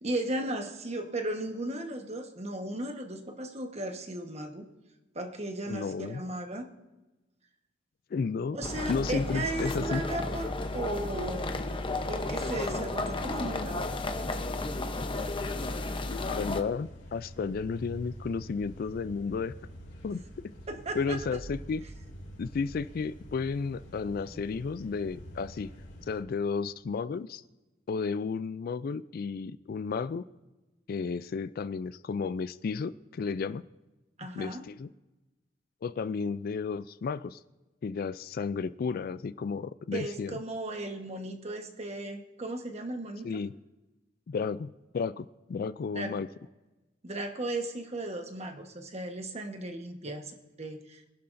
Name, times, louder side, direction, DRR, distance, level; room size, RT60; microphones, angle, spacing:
voice 1, 0.0-4.6 5.1-6.7 8.5-11.6 12.1-13.8 20.7-21.2 34.2-34.6 39.9-43.4 45.9-46.1 47.0-51.1, right 1 dB, 35° right, 5 dB, 1.2 m, -36 dB
voice 2, 5.7-6.2 8.1-8.6 8.9-10.0 16.1-19.5 20.0-20.2 21.0-21.8 22.4-25.7 26.1-27.4 27.9-30.3 30.9-33.6 34.4-34.9 35.8-37.4 37.8-40.4 43.2-43.6 44.3-46.3 50.1-50.2, left 5 dB, 50° left, 16 dB, 0.3 m, -33 dB
sound 1, 8.6-16.6, left 2 dB, 30° left, 0.8 m, -33 dB
sound 2, 16.6-26.2, equal, 75° left, 2.6 m, -47 dB
24.0 x 11.5 x 2.6 m, 1.1 s
head